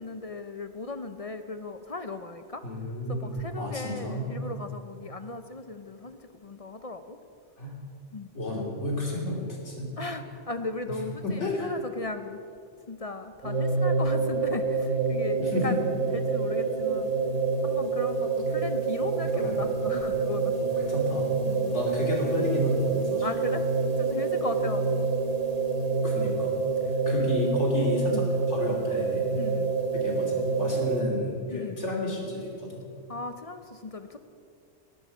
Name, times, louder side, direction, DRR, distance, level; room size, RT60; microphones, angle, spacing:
voice 1, 0.0-2.6 3.1-7.2 8.1-8.3 10.0-12.4 12.9-15.8 16.1-17.1 17.6-20.5 21.5-21.8 23.2-25.1 27.1-27.3 28.1-28.3 29.4-29.7 31.5-31.8 33.1-34.2, left 3 dB, 40° left, 9 dB, 0.6 m, -37 dB
voice 2, 2.6-4.3 7.6-7.8 8.3-9.9 10.9-11.0 11.2-11.7 15.4-15.7 19.2-19.6 20.6-21.3 21.7-23.3 26.0-26.5 27.1-29.2 29.9-32.8, left 1 dB, 70° left, -1 dB, 3.3 m, -31 dB
sound 1, 13.4-31.0, right 4 dB, 30° right, 1.3 m, -27 dB
19.5 x 11.0 x 5.5 m, 2.4 s
omnidirectional pair, 1.3 m